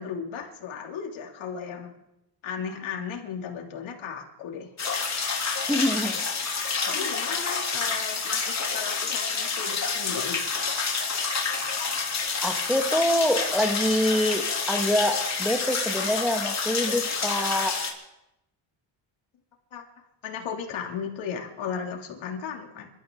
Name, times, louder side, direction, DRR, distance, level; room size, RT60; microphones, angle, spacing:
voice 1, 0.0-1.9 2.4-4.7 6.0-6.4 6.8-10.4 19.7-19.8 20.2-22.9, left 6 dB, 70° left, 1 dB, 3.0 m, -35 dB
sound 1, 4.8-17.9, left 5 dB, 35° left, 3.2 m, -28 dB
voice 2, 5.7-6.2 6.9-7.0 12.4-17.8, equal, ahead, 4 dB, 1.6 m, -25 dB
26.5 x 13.0 x 3.9 m, 0.88 s
cardioid pair, 110°, 49 cm